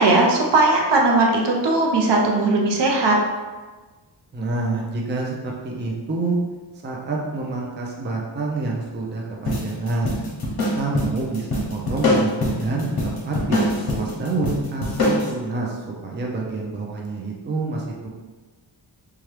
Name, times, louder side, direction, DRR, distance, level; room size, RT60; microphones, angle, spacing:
voice 1, 0.0-3.2, right 2 dB, 70° right, -1 dB, 0.7 m, -18 dB
voice 2, 4.3-6.4 6.8-10.1 10.7-12.9 13.3-18.1, right 3 dB, 25° right, -2 dB, 0.5 m, -27 dB
sound 1, 9.5-15.3, left 1 dB, 55° left, 0.9 m, -24 dB
2.9 x 2.3 x 3.2 m, 1.3 s
wide cardioid pair, 120°, 44 cm